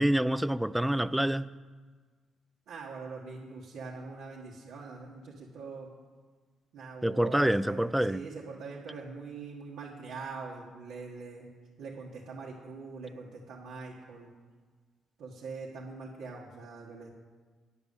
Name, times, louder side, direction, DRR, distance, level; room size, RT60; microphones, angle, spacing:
voice 1, 0.0-1.5 7.0-8.2, right 1 dB, 5° right, 0.3 m, -27 dB
voice 2, 2.7-5.9 6.7-11.5 11.8-14.3 15.2-17.1, right 4 dB, 85° right, 1.6 m, -43 dB
9.8 x 7.0 x 7.0 m
cardioid pair, 90°, 0 cm